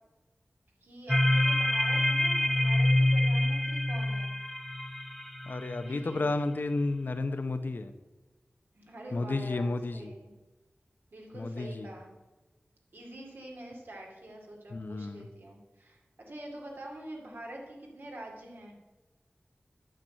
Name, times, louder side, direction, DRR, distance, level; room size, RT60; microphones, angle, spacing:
voice 1, 0.8-4.3 5.8-6.3 8.7-10.3 11.1-12.1 12.9-18.8, right 1 dB, 75° right, -1 dB, 2.3 m, -45 dB
sound 1, 1.1-5.9, left 1 dB, 5° left, 0.5 m, -26 dB
voice 2, 5.5-7.9 9.1-10.1 11.3-11.9 14.7-15.3, left 2 dB, 65° left, 9 dB, 0.7 m, -32 dB
8.9 x 6.0 x 6.5 m, 1.1 s
wide cardioid pair, 70°, 4 cm